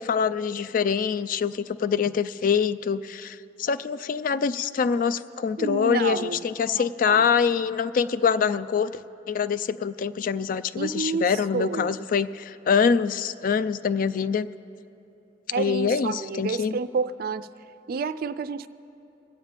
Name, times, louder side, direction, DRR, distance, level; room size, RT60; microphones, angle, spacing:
voice 1, 0.0-9.0 9.3-14.5 15.6-16.8, left 6 dB, 50° left, 15 dB, 0.3 m, -25 dB
voice 2, 5.6-6.5 6.7-7.3 10.8-12.0 15.5-17.5 17.9-18.7, right 5 dB, 55° right, 14 dB, 0.4 m, -29 dB
23.0 x 8.8 x 3.4 m, 2.9 s
head